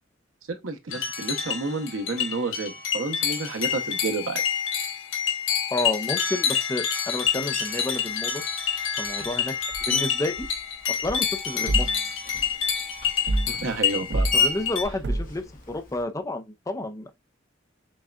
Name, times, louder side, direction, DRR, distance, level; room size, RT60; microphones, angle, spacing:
voice 1, 0.5-4.4 13.5-14.3, right 3 dB, 85° right, 0.8 m, -30 dB
sound 1, 0.9-14.8, left 7 dB, 75° left, 1.1 m, -28 dB
voice 2, 5.7-8.4 9.0-9.5 9.9-10.5 10.9-12.1 14.3-17.1, left 2 dB, 15° left, 0.5 m, -31 dB
Screech, 7.5-8.0 8.7-11.5 11.7-16.0, left 5 dB, 45° left, 0.9 m, -32 dB
sound 2, 11.7-12.0 13.3-13.6 14.1-14.4 15.0-15.4, right 1 dB, 65° right, 0.5 m, -25 dB
6.1 x 2.3 x 2.3 m
head